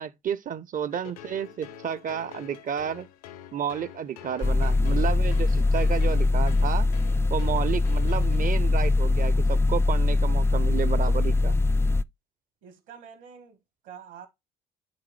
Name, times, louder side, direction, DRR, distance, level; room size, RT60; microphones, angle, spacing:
voice 1, 0.0-3.1 3.5-6.9 7.3-11.5, right 8 dB, 45° right, 0.7 m, -31 dB
sound 1, 0.9-9.0, left 9 dB, 80° left, 0.9 m, -46 dB
sound 2, 4.4-12.0, left 2 dB, 15° left, 0.3 m, -22 dB
voice 2, 12.6-14.3, right 7 dB, 75° right, 2.0 m, -47 dB
10.5 x 3.7 x 3.1 m
hypercardioid pair, 50°, 20 cm